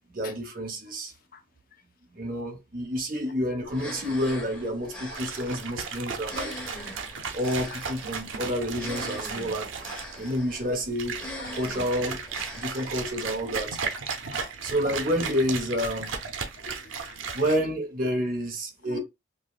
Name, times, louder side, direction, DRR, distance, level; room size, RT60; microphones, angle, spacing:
voice 1, 0.1-1.1 2.1-6.5 7.3-9.7 10.2-11.2 11.5-12.2 12.5-13.8 14.6-16.1 17.3-19.0, equal, 45° right, 1.0 m, -29 dB
sound 1, 3.7-13.6, left 1 dB, 5° left, 1.0 m, -42 dB
sound 2, 5.1-17.6, right 5 dB, 85° right, 0.7 m, -35 dB
voice 2, 14.2-14.5 16.6-17.4 18.8-19.0, left 5 dB, 45° left, 0.6 m, -44 dB
5.1 x 2.1 x 2.4 m
head